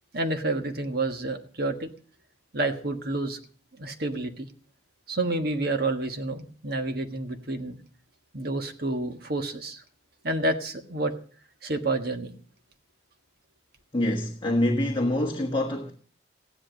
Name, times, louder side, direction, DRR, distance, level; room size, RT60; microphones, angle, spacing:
voice 1, 0.1-1.9 2.5-3.4 3.8-4.5 5.1-7.8 8.3-9.8 10.2-11.1 11.6-12.3, right 2 dB, 50° right, 1.5 m, -29 dB
voice 2, 13.9-15.9, left 1 dB, 25° left, 1.3 m, -25 dB
15.0 x 11.0 x 6.4 m
head